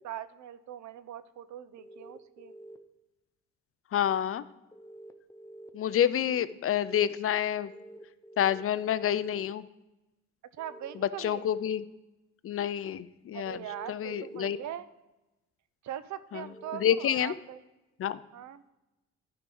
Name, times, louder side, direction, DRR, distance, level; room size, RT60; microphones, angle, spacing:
voice 1, 0.0-2.5 10.6-11.5 13.3-14.9 15.8-17.6 18.1-18.7, right 11 dB, 70° right, 15 dB, 0.7 m, -41 dB
sound 1, 1.8-2.8 4.7-5.7 7.6-8.6 10.6-11.6 13.5-14.5 16.4-16.8, right 1 dB, 10° left, 0.8 m, -48 dB
voice 2, 3.9-4.4 5.7-7.7 8.4-9.6 11.2-11.8 12.4-13.6 13.9-14.6 16.3-16.4 16.8-17.3 18.0-18.2, left 10 dB, 45° left, 16 dB, 0.5 m, -28 dB
11.5 x 4.8 x 5.4 m, 1.0 s
cardioid pair, 90°, 30 cm